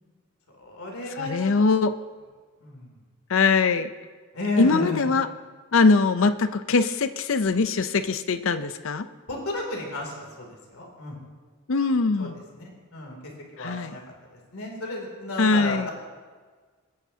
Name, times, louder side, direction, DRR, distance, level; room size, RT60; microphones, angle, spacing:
voice 1, 0.6-1.5 2.6-2.9 4.3-5.1 9.3-10.5 10.7-11.2 12.2-13.2 13.5-14.0 14.3-15.9, left 2 dB, 80° left, 0 dB, 2.9 m, -32 dB
voice 2, 1.2-1.9 3.3-3.9 4.6-5.3 5.7-9.1 11.7-12.4 13.6-14.0 15.4-15.9, left 4 dB, 65° left, 11 dB, 0.6 m, -22 dB
22.5 x 9.8 x 2.8 m, 1.5 s
head